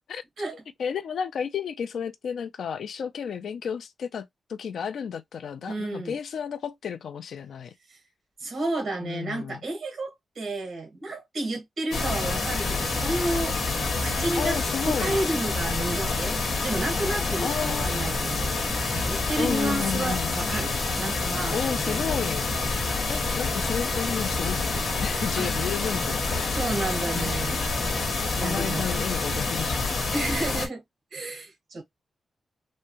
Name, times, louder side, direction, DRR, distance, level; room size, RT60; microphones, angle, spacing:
voice 1, 0.8-7.7 9.0-9.6 14.4-15.1 17.4-17.9 19.4-20.4 21.5-22.4 23.1-26.6 27.1-27.3 28.3-29.8, left 7 dB, 80° left, 0.4 m, -32 dB
voice 2, 5.7-6.2 7.9-8.0 8.4-16.4 16.6-18.6 19.1-20.7 21.0-21.6 21.8-22.2 25.4-25.5 26.5-27.6 28.3-28.9 30.1-30.8 31.1-31.8, right 2 dB, 45° right, 1.3 m, -31 dB
sound 1, 11.9-30.7, left 3 dB, 65° left, 1.1 m, -27 dB
3.5 x 2.1 x 2.8 m
wide cardioid pair, 175°, 0 cm